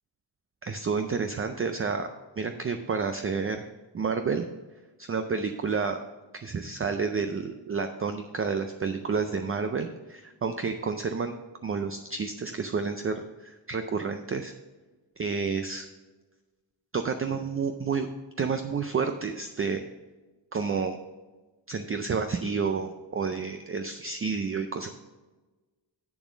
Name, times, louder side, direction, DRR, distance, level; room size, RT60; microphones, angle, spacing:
voice 1, 0.6-2.1 2.4-3.7 3.9-4.5 5.0-6.0 6.4-11.3 11.6-14.5 15.2-15.9 16.9-18.1 18.4-19.8 20.5-21.0 21.7-24.9, right 5 dB, 30° right, 7 dB, 0.4 m, -30 dB
8.3 x 7.0 x 5.0 m, 1.2 s
wide cardioid pair, 175°, 45 cm